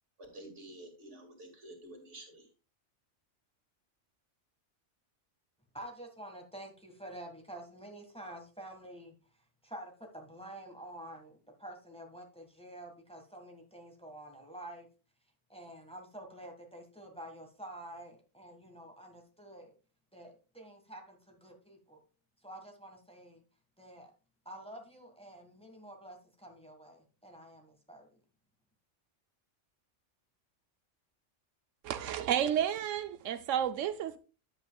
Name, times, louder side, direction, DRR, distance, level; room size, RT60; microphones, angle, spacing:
voice 1, 0.2-2.5, right 1 dB, 70° right, 2.5 m, -50 dB
voice 2, 5.7-9.1 9.6-14.9 15.5-19.7 20.1-22.0 22.4-23.4 23.8-24.1 24.4-28.2, right 1 dB, 5° left, 1.6 m, -48 dB
voice 3, 31.8-34.2, right 9 dB, 90° right, 1.0 m, -31 dB
10.5 x 7.9 x 2.3 m
omnidirectional pair, 1.3 m